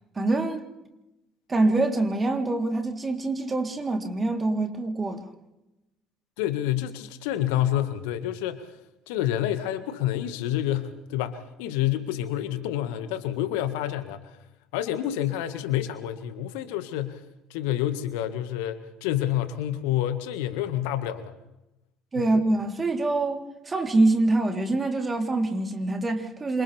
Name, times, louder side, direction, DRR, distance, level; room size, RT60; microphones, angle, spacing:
voice 1, 0.2-0.6 1.5-5.3 22.1-26.6, right 2 dB, 25° right, 3.6 m, -25 dB
voice 2, 6.4-8.7 9.1-14.2 14.7-17.2 17.5-21.3 22.2-22.3, left 12 dB, 70° left, 1.8 m, -28 dB
28.5 x 27.0 x 3.5 m
hypercardioid pair, 60°, 0 cm